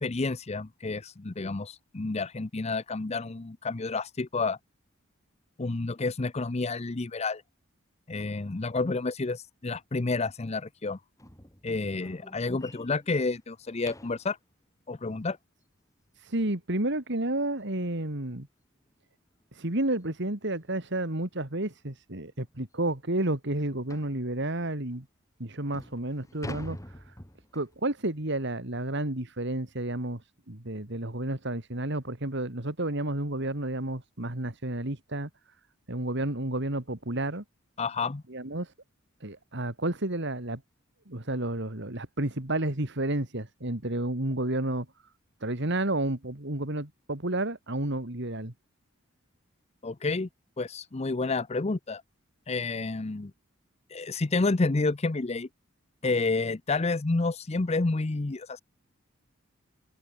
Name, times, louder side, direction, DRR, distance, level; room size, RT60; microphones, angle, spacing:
voice 1, 0.0-4.6 5.6-7.4 8.1-11.0 11.6-14.4 14.9-15.4 37.8-38.2 49.8-50.3 50.6-52.0 52.5-53.3 53.9-55.5 56.0-58.6, left 3 dB, 30° left, 0.6 m, -29 dB
sound 1, 11.2-14.3 17.1-17.2 17.7-17.9 18.2-18.3 18.8-18.9 20.0-20.1 20.5-20.7 21.3-21.4 21.8-21.9 22.4-22.5 23.9-24.2 24.9-25.0 25.5-27.8, left 1 dB, 15° left, 5.8 m, -45 dB
voice 2, 16.2-18.5 19.5-25.1 25.4-27.1 27.5-35.3 35.9-37.4 38.3-38.7 39.2-40.6 41.1-44.9 45.4-48.5, right 1 dB, 60° right, 2.8 m, -31 dB
open air
head